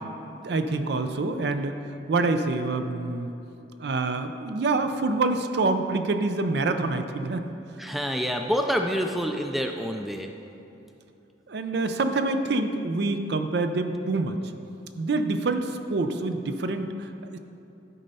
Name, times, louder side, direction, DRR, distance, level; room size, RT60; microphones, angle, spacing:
voice 1, 0.4-1.8 2.1-3.3 3.8-7.5 11.5-14.4 15.0-17.4, right 3 dB, 65° right, 8 dB, 0.5 m, -26 dB
voice 2, 7.8-10.3, equal, ahead, 4 dB, 0.3 m, -27 dB
11.0 x 4.2 x 5.4 m, 2.8 s
head